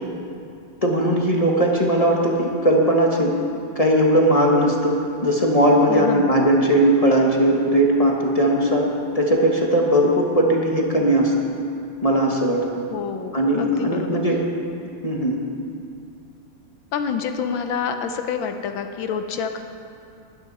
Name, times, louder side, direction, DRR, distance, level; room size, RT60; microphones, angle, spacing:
voice 1, 0.8-3.3 3.7-4.9 5.2-8.9 9.1-11.3 12.0-12.6 13.3-14.4 15.0-15.4, right 1 dB, 20° left, -1 dB, 1.1 m, -18 dB
voice 2, 5.9-6.3 12.9-14.2 16.9-19.6, left 6 dB, 70° left, 7 dB, 1.4 m, -27 dB
20.0 x 12.0 x 4.1 m, 2.5 s
omnidirectional pair, 2.4 m